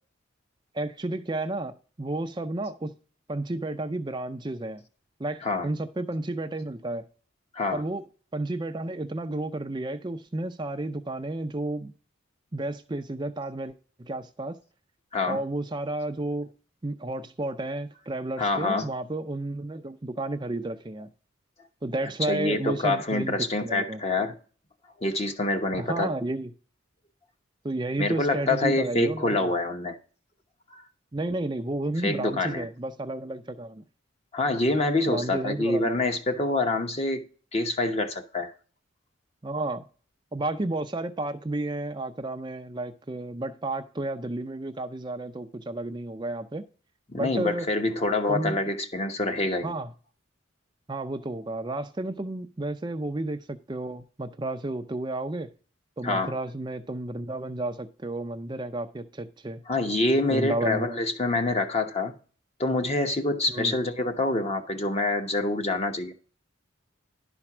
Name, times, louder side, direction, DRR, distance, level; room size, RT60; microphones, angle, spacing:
voice 1, 0.7-2.9 3.3-4.8 5.2-7.0 7.7-8.0 8.3-11.9 12.5-13.7 14.0-14.6 15.2-16.5 16.8-21.1 21.8-24.0 25.8-26.5 27.6-29.5 31.1-33.8 35.1-36.0 39.4-39.8 40.3-46.6 47.2-47.7 48.3-48.6 49.6-49.9 50.9-55.5 56.0-59.6 60.3-61.0 63.5-63.7, right 2 dB, 20° right, 0.5 m, -32 dB
voice 2, 5.4-5.7 7.5-7.8 15.1-15.4 18.4-18.9 22.0-24.3 25.0-26.1 28.0-30.0 30.7-30.8 32.0-32.7 34.3-37.2 37.5-38.5 47.1-49.8 56.0-56.3 59.7-62.1 62.6-66.1, left 2 dB, 30° left, 1.0 m, -26 dB
11.0 x 4.3 x 6.0 m
head